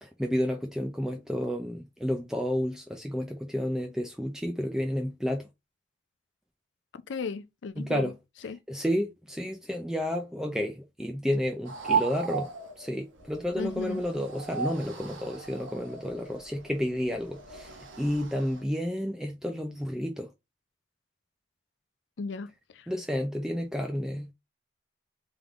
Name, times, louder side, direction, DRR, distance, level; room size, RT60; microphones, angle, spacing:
voice 1, 0.0-5.5 7.8-8.1 8.7-12.5 12.8-20.3 22.9-24.3, equal, 5° right, 0.4 m, -31 dB
voice 2, 7.1-8.1 8.4-8.6 13.6-14.0 22.2-22.5 22.7-22.9, left 4 dB, 75° left, 0.4 m, -35 dB
sound 1, 11.6-18.6, right 6 dB, 90° right, 1.2 m, -36 dB
3.6 x 3.5 x 3.5 m
head